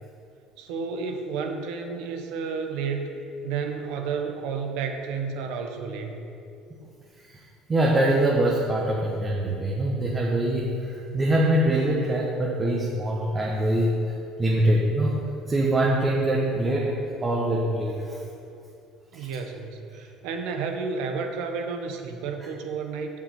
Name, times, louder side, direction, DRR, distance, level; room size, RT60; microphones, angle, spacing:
voice 1, 0.6-6.1 19.1-23.1, right 5 dB, 80° right, 4 dB, 1.2 m, -31 dB
voice 2, 7.7-13.9 14.4-18.2 19.1-19.3, right 1 dB, 25° right, -3 dB, 1.4 m, -24 dB
7.4 x 6.5 x 7.9 m, 2.6 s
cardioid pair, 110°, 0 cm